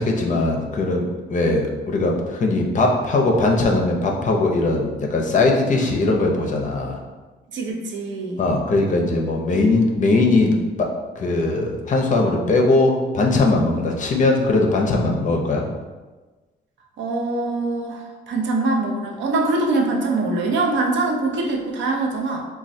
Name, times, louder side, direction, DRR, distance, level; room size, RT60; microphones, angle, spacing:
voice 1, 0.0-7.0 8.4-10.9 11.2-15.6, left 2 dB, 40° left, 1 dB, 0.5 m, -20 dB
voice 2, 7.5-8.5 17.0-22.4, right 2 dB, 70° right, 0 dB, 0.6 m, -23 dB
3.1 x 2.2 x 2.6 m, 1.3 s
cardioid pair, 90°, 20 cm